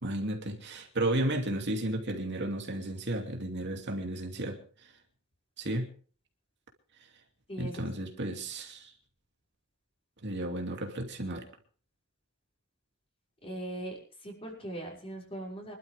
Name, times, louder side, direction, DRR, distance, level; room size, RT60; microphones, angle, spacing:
voice 1, 0.0-4.9 5.6-5.9 7.6-8.9 10.2-11.5, right 1 dB, 55° right, 3 dB, 2.6 m, -33 dB
voice 2, 7.5-7.9 13.4-15.7, right 1 dB, 25° left, -1 dB, 5.9 m, -40 dB
24.5 x 12.5 x 3.5 m, 0.41 s
head